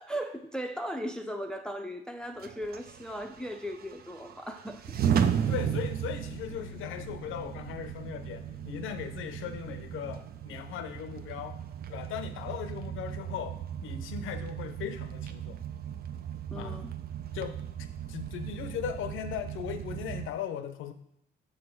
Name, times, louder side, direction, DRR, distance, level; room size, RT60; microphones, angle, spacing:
voice 1, 0.0-5.0 16.5-16.9, equal, 5° left, 5 dB, 0.5 m, -37 dB
sound 1, 2.4-20.3, right 8 dB, 50° right, 0.5 m, -35 dB
voice 2, 5.4-11.6 11.9-15.6 16.5-16.8 17.3-20.9, left 8 dB, 85° left, 9 dB, 0.6 m, -38 dB
sound 2, 5.7-10.0 10.5-10.6, equal, 80° right, 1.0 m, -49 dB
6.2 x 3.3 x 5.9 m, 0.81 s
cardioid pair, 90°, 20 cm